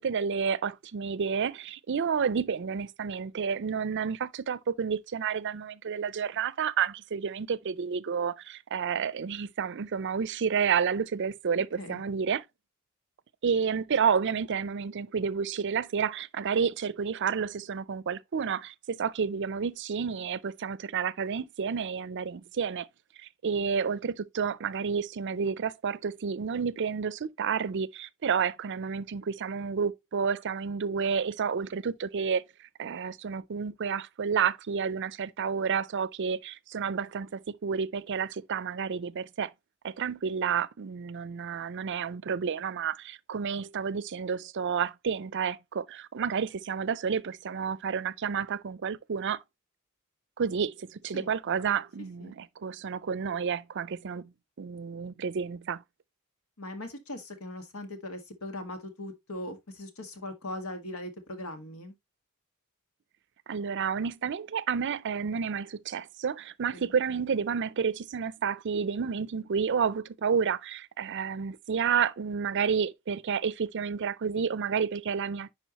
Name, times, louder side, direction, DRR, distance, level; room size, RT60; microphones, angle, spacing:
voice 1, 0.0-12.4 13.4-22.9 23.2-39.5 39.8-49.4 50.4-54.3 54.6-55.8 63.5-75.5, right 6 dB, 60° right, 0.5 m, -30 dB
voice 2, 56.6-61.9 66.7-66.9, left 1 dB, 85° left, 1.8 m, -40 dB
10.0 x 4.7 x 2.9 m
head